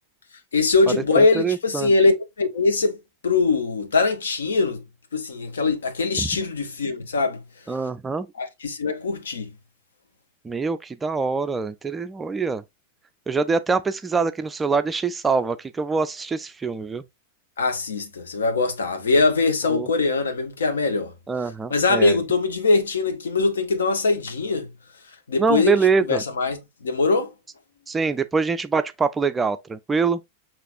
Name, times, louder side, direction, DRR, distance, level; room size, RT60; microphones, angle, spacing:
voice 1, 0.5-3.0 3.2-4.8 5.1-7.4 8.4-9.5 17.6-21.1 21.7-24.7 25.3-25.8 26.1-27.3, left 3 dB, 70° left, 0.8 m, -22 dB
voice 2, 1.2-1.9 6.2-6.3 7.7-8.3 10.4-12.6 13.3-17.0 19.7-19.9 21.3-22.2 25.4-26.2 27.9-30.2, right 5 dB, 15° right, 0.3 m, -24 dB
5.7 x 3.0 x 2.4 m
figure-of-eight pair, 90°, 0 cm